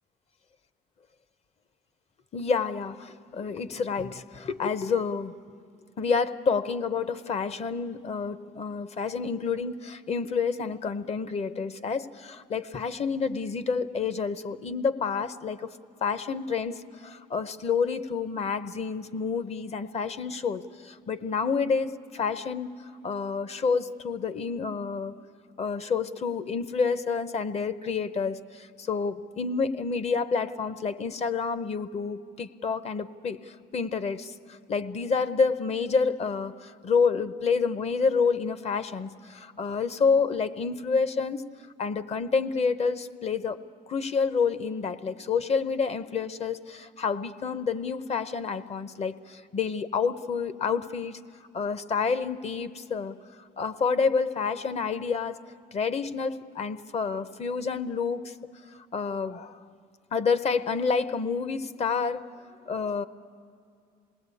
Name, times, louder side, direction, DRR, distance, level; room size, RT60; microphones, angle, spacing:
voice 1, 2.3-5.3 6.0-15.7 16.0-22.7 23.0-25.2 25.6-41.5 41.8-43.6 43.9-51.2 51.5-53.2 53.6-55.4 55.7-58.3 58.9-59.6 60.1-62.3 62.7-63.1, left 5 dB, 40° left, 14 dB, 0.8 m, -28 dB
28.0 x 20.0 x 8.4 m, 2.4 s
cardioid pair, 110°, 17 cm